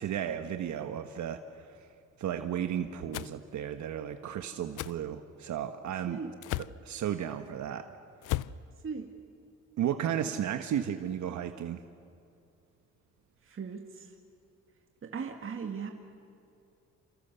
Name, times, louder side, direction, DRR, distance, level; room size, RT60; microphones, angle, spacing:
voice 1, 0.0-1.7 2.2-6.2 6.8-7.8 9.8-11.8, right 9 dB, 70° right, 7 dB, 1.3 m, -34 dB
sound 1, 3.1-3.3 4.8-5.0 6.4-6.8 8.2-8.6, left 16 dB, 85° left, 0.6 m, -34 dB
voice 2, 13.5-14.1 15.0-15.9, right 5 dB, 45° right, 3 dB, 2.2 m, -38 dB
28.5 x 27.5 x 7.0 m, 2.5 s
cardioid pair, 90°, 30 cm